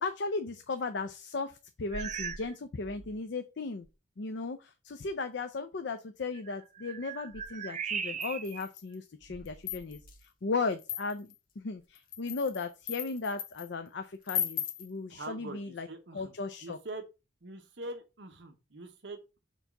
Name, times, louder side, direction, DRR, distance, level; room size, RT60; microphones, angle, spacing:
voice 1, 0.0-3.9 4.2-10.0 10.4-15.9 16.1-16.8, left 3 dB, 60° left, 8 dB, 0.5 m, -36 dB
sound 1, 1.9-2.6 2.8-3.2 3.9-4.0 6.3-8.7 9.2-10.2, right 6 dB, 35° right, 0.5 m, -39 dB
sound 2, 8.2-8.9 9.4-10.1 10.8-11.3 11.9-13.7 14.3-14.9, left 9 dB, 45° left, 0.9 m, -36 dB
voice 2, 15.1-16.3 16.6-17.0 17.4-19.4, right 2 dB, 65° right, 5 dB, 0.9 m, -43 dB
4.5 x 4.0 x 5.7 m, 0.28 s
head